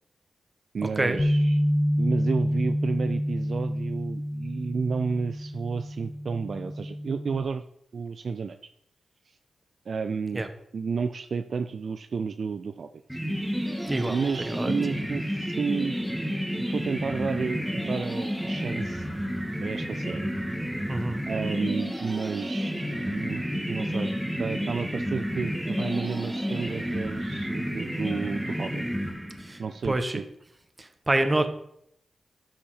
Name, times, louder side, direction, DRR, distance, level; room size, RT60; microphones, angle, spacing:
voice 1, 0.7-1.6 2.0-7.6 7.9-8.6 9.3-9.4 9.9-10.4 10.7-13.2 14.1-16.0 16.5-19.1 19.6-20.3 21.3-22.7 23.0-23.4 23.7-24.1 24.4-28.8 29.6-30.2, right 5 dB, 65° right, 9 dB, 0.4 m, -31 dB
Bass guitar, 1.2-7.4, equal, 20° left, 0.8 m, -28 dB
sound 1, 13.1-29.7, equal, 10° right, 1.7 m, -31 dB
voice 2, 13.9-14.7 20.9-21.3 29.4-29.6 29.8-30.2 30.8-31.5, right 2 dB, 30° right, 7 dB, 1.5 m, -27 dB
12.5 x 5.7 x 4.3 m, 0.71 s
supercardioid pair, 45°, 0 cm